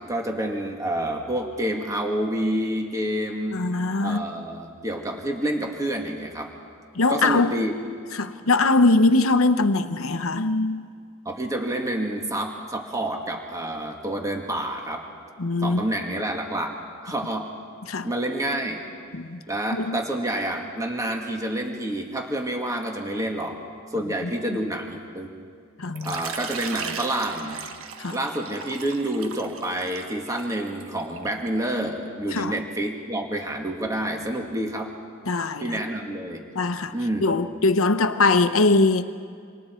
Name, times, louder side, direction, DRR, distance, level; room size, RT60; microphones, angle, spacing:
voice 1, 0.0-3.7 4.0-6.5 7.1-7.8 11.3-15.0 15.6-16.8 17.0-17.6 18.0-18.8 19.5-23.6 23.9-25.3 26.0-27.6 28.1-35.0 35.6-36.4 36.9-37.3, right 1 dB, 15° right, 1.9 m, -28 dB
voice 2, 3.5-4.2 7.0-7.5 8.2-10.8 15.4-15.8 17.9-18.1 19.1-19.4 19.7-20.0 25.8-26.1 28.0-28.2 32.3-32.5 35.3-35.6 36.5-36.9 37.2-39.0, left 3 dB, 85° left, 0.9 m, -21 dB
Water / Liquid, 26.0-31.5, right 6 dB, 85° right, 1.3 m, -37 dB
28.0 x 26.5 x 4.5 m
head